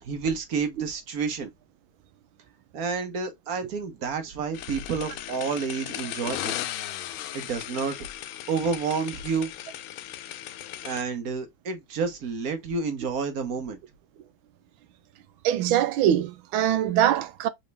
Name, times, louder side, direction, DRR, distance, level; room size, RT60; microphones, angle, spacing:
voice 1, 0.0-1.5 2.7-6.5 7.3-9.5 10.8-13.8, right 5 dB, 55° right, 1.3 m, -30 dB
sound 1, 4.5-11.0, left 13 dB, 85° left, 1.4 m, -37 dB
voice 2, 15.4-17.5, right 11 dB, 90° right, 1.5 m, -23 dB
4.2 x 3.5 x 3.4 m
omnidirectional pair, 2.1 m